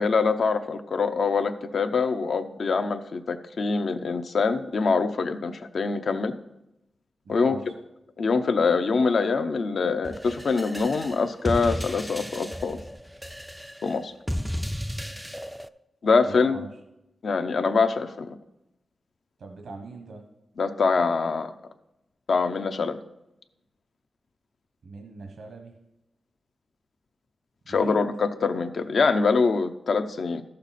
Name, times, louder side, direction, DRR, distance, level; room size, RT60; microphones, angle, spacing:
voice 1, 0.0-6.3 7.3-7.6 8.2-12.8 13.8-14.1 16.0-16.6 17.2-18.4 20.6-21.5 22.3-23.0 27.7-30.4, left 4 dB, 70° left, 8 dB, 0.7 m, -24 dB
voice 2, 7.2-7.7 16.3-16.7 19.4-20.3 24.8-25.7 27.7-28.0, right 3 dB, 85° right, 3 dB, 1.1 m, -40 dB
sound 1, 10.0-15.7, equal, ahead, 0.3 m, -34 dB
13.0 x 6.6 x 4.2 m, 0.87 s
wide cardioid pair, 100°, 0 cm